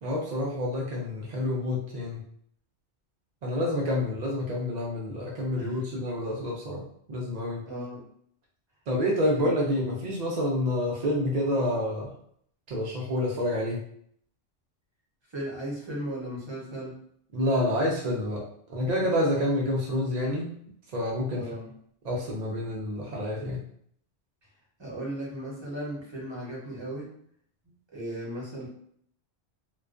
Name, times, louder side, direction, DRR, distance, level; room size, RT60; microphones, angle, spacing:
voice 1, 0.0-2.2 3.4-6.8 7.1-7.6 8.9-12.1 12.7-13.8 17.3-18.4 18.7-20.5 20.9-21.4 22.0-23.6, left 1 dB, 80° right, -3 dB, 0.3 m, -28 dB
voice 2, 7.7-8.0 9.3-9.5 15.3-17.0 21.3-21.7 24.8-27.1 27.9-28.7, right 1 dB, 25° right, -5 dB, 0.7 m, -36 dB
2.3 x 2.2 x 2.4 m, 0.65 s
omnidirectional pair, 1.3 m